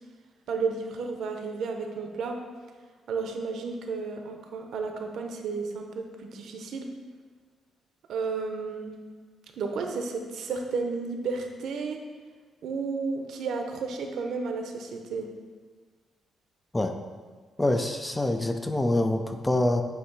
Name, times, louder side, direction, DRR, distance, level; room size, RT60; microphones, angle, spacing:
voice 1, 0.5-2.4 3.1-6.9 8.1-8.9 9.6-12.0 12.6-15.3, right 4 dB, 70° right, 4 dB, 0.7 m, -32 dB
voice 2, 17.6-19.8, left 1 dB, 10° left, 6 dB, 0.3 m, -25 dB
8.1 x 2.8 x 4.6 m, 1.5 s
cardioid pair, 140°, 0 cm